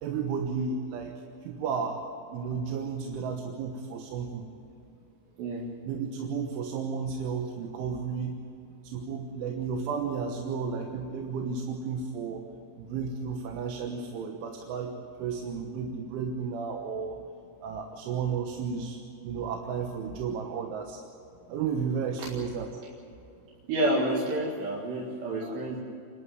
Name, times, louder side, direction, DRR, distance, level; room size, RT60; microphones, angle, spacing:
voice 1, 0.0-4.5 5.8-8.4 8.8-12.5 12.8-17.2 17.6-21.0 21.5-22.7 25.4-25.8, right 6 dB, 90° right, 3 dB, 3.7 m, -33 dB
voice 2, 23.7-25.8, right 1 dB, 70° right, -2 dB, 3.9 m, -29 dB
28.0 x 12.0 x 9.5 m, 2.8 s
omnidirectional pair, 5.3 m